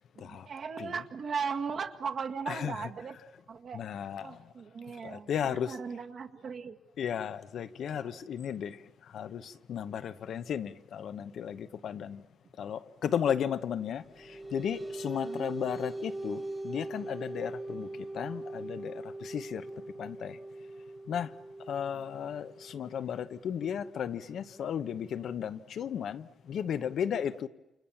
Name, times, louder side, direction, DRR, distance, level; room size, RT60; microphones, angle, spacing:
voice 1, 0.2-3.2 3.5-3.8 4.2-6.8 7.9-8.2 15.2-15.6 21.9-22.0, right 5 dB, 55° right, 1.9 m, -38 dB
voice 2, 2.5-2.9 3.7-4.4 5.0-5.8 7.0-12.2 12.6-19.6 20.0-20.4 21.1-21.3 21.7-27.5, left 8 dB, 75° left, 1.0 m, -35 dB
sound 1, 13.9-24.9, right 2 dB, 10° right, 1.1 m, -42 dB
29.0 x 28.0 x 7.2 m
wide cardioid pair, 145°, 0 cm